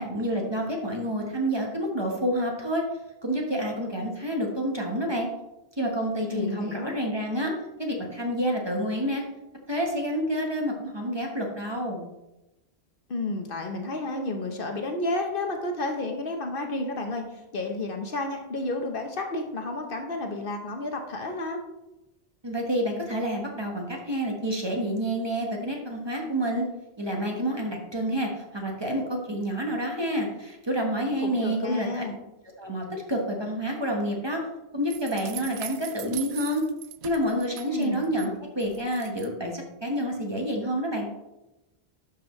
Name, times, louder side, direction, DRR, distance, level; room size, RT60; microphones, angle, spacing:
voice 1, 0.0-2.8 3.2-5.3 5.8-7.5 7.8-9.2 9.7-12.1 22.4-26.7 27.0-32.0 32.6-34.4 34.7-36.6 37.0-41.1, equal, 25° right, 0 dB, 1.2 m, -28 dB
voice 2, 6.3-7.0 13.1-21.6 31.2-32.2 37.7-38.1, left 2 dB, 55° left, 4 dB, 1.0 m, -31 dB
sound 1, 34.9-38.3 38.6-39.3, right 11 dB, 80° right, 0.8 m, -40 dB
11.5 x 5.4 x 3.1 m, 0.96 s
omnidirectional pair, 1.1 m